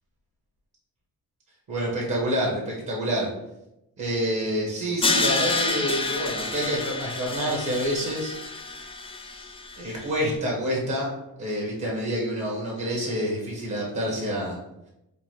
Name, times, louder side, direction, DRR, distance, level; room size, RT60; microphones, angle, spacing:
voice 1, 1.7-3.3 4.0-8.4 9.8-11.1 11.4-14.6, equal, 60° right, -3 dB, 1.0 m, -27 dB
Crash cymbal, 5.0-10.1, left 3 dB, 15° left, 0.4 m, -29 dB
3.0 x 2.3 x 3.1 m, 0.89 s
supercardioid pair, 60°, 34 cm